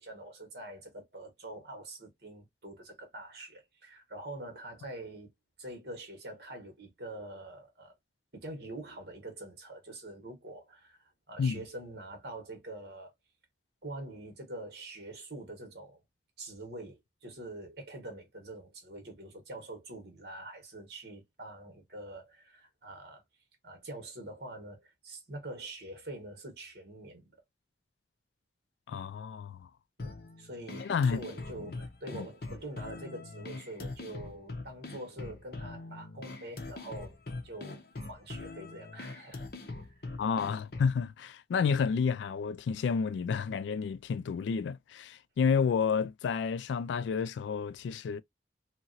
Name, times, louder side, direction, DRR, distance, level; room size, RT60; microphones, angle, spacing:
voice 1, 0.0-5.3 5.6-7.9 8.3-13.1 13.8-16.0 16.4-23.2 23.6-27.3 30.0-37.2 37.4-37.8 38.1-39.5 40.0-40.1, right 1 dB, 60° right, 1.4 m, -45 dB
voice 2, 28.9-29.7 30.8-31.2 32.1-32.3 40.2-48.2, left 6 dB, 80° left, 0.3 m, -30 dB
sound 1, 30.0-41.0, left 2 dB, 55° left, 0.7 m, -43 dB
2.9 x 2.8 x 2.6 m
head